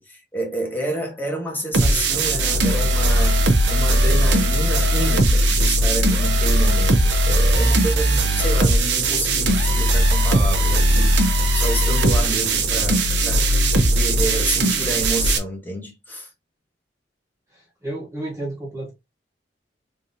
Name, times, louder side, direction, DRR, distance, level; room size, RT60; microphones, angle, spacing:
voice 1, 0.0-13.5 13.8-16.3, right 1 dB, 10° left, 1.1 m, -29 dB
sound 1, 1.7-15.4, right 1 dB, 75° right, 0.7 m, -18 dB
voice 2, 17.5-18.9, right 1 dB, 15° right, 1.1 m, -32 dB
3.6 x 2.8 x 2.7 m
head